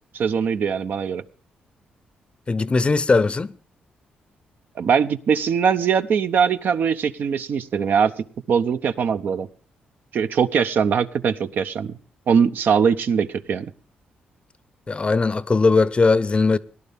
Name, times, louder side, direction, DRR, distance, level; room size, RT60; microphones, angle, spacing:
voice 1, 0.1-1.2 4.8-8.1 8.5-9.5 10.1-12.0 12.3-13.7, right 6 dB, 65° right, 0.7 m, -21 dB
voice 2, 2.5-3.5 14.9-16.6, left 3 dB, 30° left, 0.6 m, -19 dB
18.0 x 11.0 x 3.5 m
cardioid pair, 75°, 4 cm